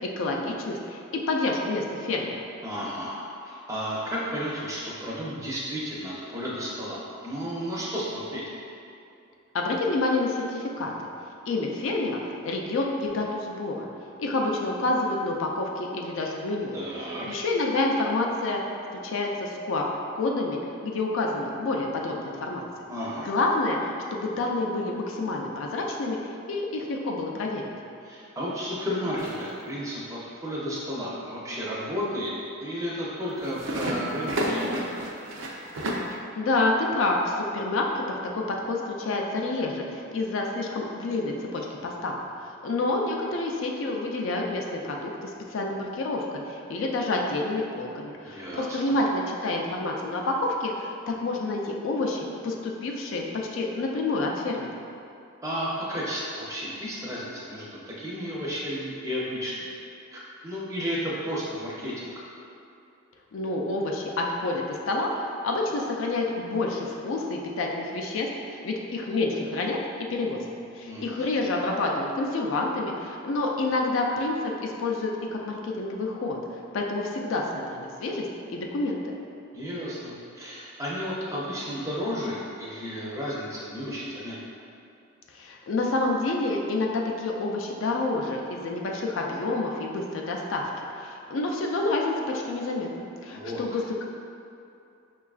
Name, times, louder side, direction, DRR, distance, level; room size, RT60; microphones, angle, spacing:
voice 1, 0.0-2.3 9.5-10.9 11.5-13.9 14.2-16.8 17.3-18.6 18.9-19.9 20.2-22.6 23.2-27.6 36.1-42.2 42.6-50.9 51.2-53.2 53.5-54.7 63.3-69.8 70.1-70.4 70.7-76.4 76.7-79.1 85.3-90.6 91.0-92.9 93.2-94.0, left 2 dB, 70° left, 0 dB, 0.4 m, -28 dB
voice 2, 2.6-8.4 16.7-17.3 22.9-23.3 28.0-32.3 32.6-35.1 48.2-49.0 55.4-59.7 60.1-62.1 70.8-71.4 79.5-84.4 93.3-93.6, equal, 15° right, -6 dB, 0.5 m, -33 dB
sound 1, 29.2-29.6 33.3-36.1, right 1 dB, 70° right, 0.4 m, -31 dB
5.4 x 2.3 x 2.3 m, 2.6 s
head